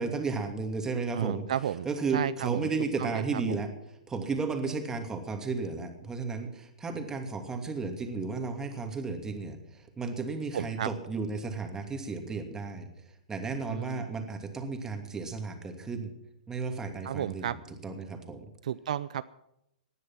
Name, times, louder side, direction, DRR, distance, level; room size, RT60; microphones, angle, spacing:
voice 1, 0.0-1.4 1.8-3.7 4.1-12.9 13.3-16.1 16.5-17.5 17.8-18.5, right 4 dB, 15° right, 5 dB, 2.7 m, -33 dB
voice 2, 1.1-1.9 2.1-2.7 3.0-3.6 10.5-10.9 13.7-14.1 17.0-17.6 18.6-19.2, right 10 dB, 65° right, 15 dB, 0.5 m, -32 dB
18.5 x 11.5 x 6.0 m, 0.83 s
hypercardioid pair, 120°, 4 cm